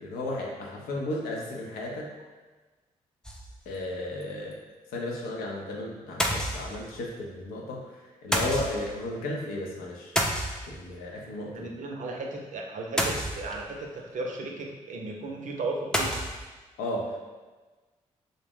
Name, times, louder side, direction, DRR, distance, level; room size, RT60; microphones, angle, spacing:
voice 1, 0.0-2.1 3.7-4.5 4.9-7.8 8.2-10.1 10.7-11.7 16.8-17.2, left 1 dB, 85° left, -2 dB, 0.5 m, -34 dB
sound 1, 3.2-3.8 4.2-4.3 4.5-4.6 6.2-7.1 8.3-9.0 10.2-11.0 13.0-13.8 15.9-16.5, equal, 5° left, 0.4 m, -29 dB
voice 2, 11.5-16.2, right 2 dB, 60° right, 1 dB, 0.5 m, -35 dB
2.5 x 2.0 x 3.4 m, 1.3 s
supercardioid pair, 50°, 15 cm